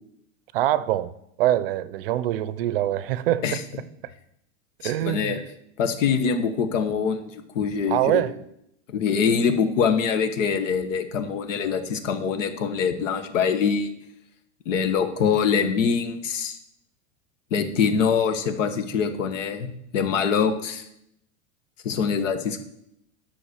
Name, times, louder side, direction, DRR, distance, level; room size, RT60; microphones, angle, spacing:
voice 1, 0.5-1.1 1.4-3.4 4.8-5.4 7.9-8.3, right 13 dB, 50° right, 16 dB, 0.5 m, -24 dB
voice 2, 4.8-5.4 5.8-8.2 8.9-13.9 14.6-16.6 17.5-20.9 21.8-22.6, left 6 dB, 80° left, 8 dB, 1.5 m, -24 dB
11.0 x 6.1 x 6.4 m, 0.78 s
supercardioid pair, 175°, 38 cm